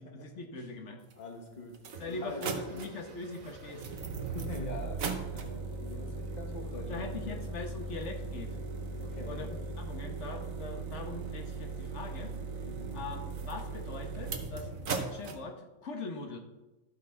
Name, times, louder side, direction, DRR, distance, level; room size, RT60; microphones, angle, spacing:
voice 1, 0.0-1.0 2.0-3.8 6.7-8.6 9.3-12.3 12.9-16.4, left 3 dB, 60° left, 4 dB, 1.5 m, -42 dB
sound 1, 1.1-1.2 1.7-15.4, right 4 dB, 80° right, 1.4 m, -38 dB
voice 2, 1.2-1.8 2.1-2.8 4.2-7.4 9.0-9.5 12.7-13.0, left 2 dB, 35° left, 1 dB, 1.5 m, -44 dB
13.0 x 5.9 x 4.4 m, 1.1 s
omnidirectional pair, 1.4 m